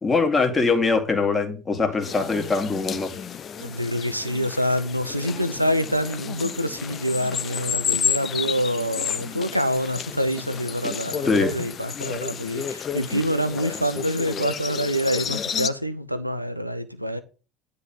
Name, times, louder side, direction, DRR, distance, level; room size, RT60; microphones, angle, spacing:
voice 1, 0.0-3.1 11.3-11.5, left 4 dB, 20° left, 2.1 m, -22 dB
sound 1, 2.0-15.7, left 8 dB, 35° left, 0.6 m, -31 dB
voice 2, 3.6-17.2, equal, 90° right, 0.7 m, -26 dB
9.9 x 4.0 x 7.3 m
figure-of-eight pair, 65°, 0 cm